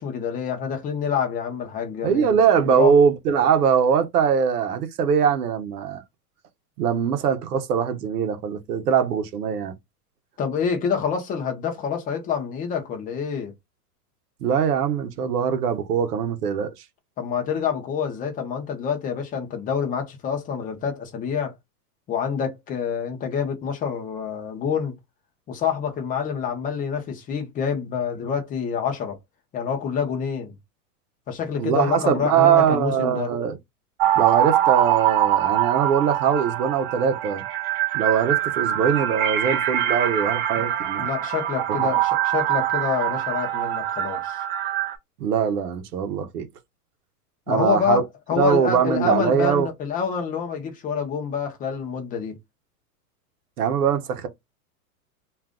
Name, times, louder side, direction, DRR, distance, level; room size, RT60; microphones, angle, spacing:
voice 1, 0.0-2.3 2.6-2.9 10.4-13.5 17.2-21.5 22.1-24.9 25.5-29.2 29.5-30.5 31.3-33.3 41.0-44.4 47.5-48.0 48.3-52.3, left 7 dB, 20° left, 0.6 m, -27 dB
voice 2, 2.0-6.0 6.8-9.7 14.4-16.7 31.6-33.6 34.2-37.4 37.9-41.1 41.7-41.9 45.2-46.4 47.5-48.0 48.4-49.7 53.6-54.3, right 7 dB, 85° right, 0.9 m, -22 dB
sound 1, 34.0-44.9, right 12 dB, 40° right, 0.4 m, -23 dB
2.6 x 2.4 x 3.5 m
hypercardioid pair, 135°, 46 cm